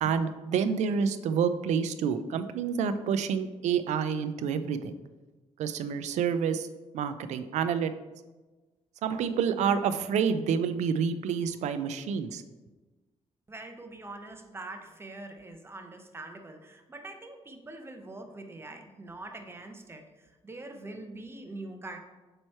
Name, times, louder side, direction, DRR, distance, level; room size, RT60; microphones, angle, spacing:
voice 1, 0.0-4.9 5.6-6.7 6.9-7.9 9.0-12.4, right 7 dB, 85° right, 11 dB, 0.4 m, -28 dB
voice 2, 13.5-22.0, right 2 dB, 20° right, 5 dB, 0.8 m, -44 dB
7.6 x 3.1 x 4.4 m, 1.2 s
cardioid pair, 110°, 12 cm